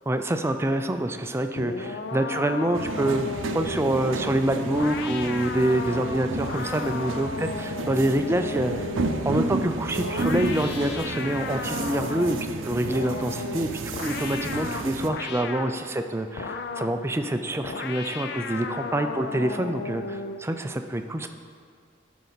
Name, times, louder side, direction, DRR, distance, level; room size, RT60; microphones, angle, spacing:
voice 1, 0.1-3.3 3.5-8.9 9.3-12.4 12.6-21.3, right 1 dB, 15° right, 7 dB, 0.4 m, -26 dB
sound 1, 1.6-9.4 10.0-12.5 12.8-15.8 16.4-17.0 17.6-20.5, left 4 dB, 55° left, 0.4 m, -35 dB
sound 2, 2.7-15.1, right 2 dB, 85° right, 0.6 m, -32 dB
12.5 x 5.1 x 4.1 m, 2.1 s
head